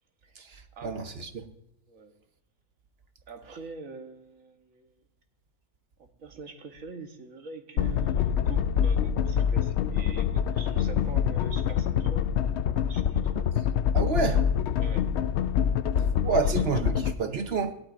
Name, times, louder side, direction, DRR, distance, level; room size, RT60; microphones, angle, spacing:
voice 1, 0.4-1.5 13.9-14.4 16.2-17.8, right 5 dB, 50° right, 1.1 m, -29 dB
voice 2, 3.3-5.0 6.0-12.2 12.9-13.5 14.8-15.1 16.3-17.1, right 4 dB, 70° right, 1.7 m, -45 dB
sound 1, 7.8-17.1, left 8 dB, 65° left, 0.7 m, -25 dB
17.5 x 11.5 x 2.5 m
omnidirectional pair, 1.5 m